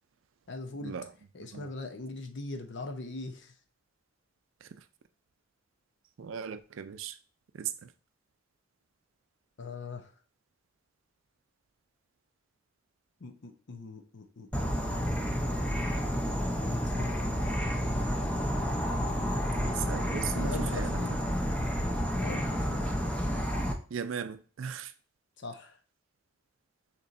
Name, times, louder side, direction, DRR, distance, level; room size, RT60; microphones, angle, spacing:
voice 1, 0.5-1.0 1.3-3.5 9.6-10.1 13.2-15.1 16.7-17.4 20.3-21.1 22.1-22.9 25.4-25.8, left 3 dB, 60° left, 0.7 m, -41 dB
voice 2, 1.4-1.7 4.6-4.8 6.2-7.2 7.5-7.9 19.6-21.0 23.9-24.9, right 7 dB, 70° right, 0.4 m, -38 dB
Insect / Frog, 14.5-23.7, equal, 5° left, 0.6 m, -30 dB
6.8 x 3.0 x 2.5 m
head